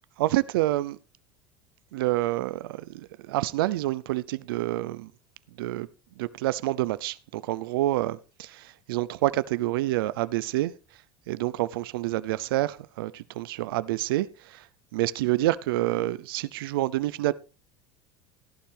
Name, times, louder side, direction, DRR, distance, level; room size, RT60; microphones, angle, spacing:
voice 1, 0.2-1.0 1.9-5.1 5.6-5.9 6.2-10.7 11.3-14.7 14.9-17.3, right 16 dB, 90° right, 0.6 m, -28 dB
14.5 x 11.5 x 3.5 m
supercardioid pair, 125°, 12 cm